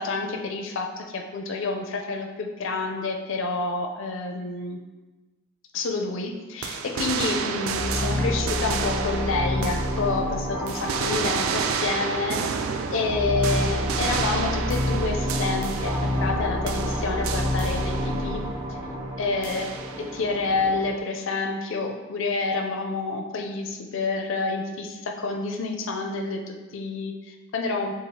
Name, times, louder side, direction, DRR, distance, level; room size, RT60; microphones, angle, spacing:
voice 1, 0.0-4.8 5.7-12.4 12.9-18.4 19.2-19.7 20.0-27.9, left 3 dB, 70° left, 3 dB, 0.4 m, -28 dB
sound 1, 6.6-10.3 10.7-16.4 16.7-18.3 19.4-20.2, right 6 dB, 80° right, 0.3 m, -31 dB
sound 2, 7.7-21.0, equal, 20° right, 0.6 m, -29 dB
6.4 x 2.3 x 2.7 m, 1.2 s
head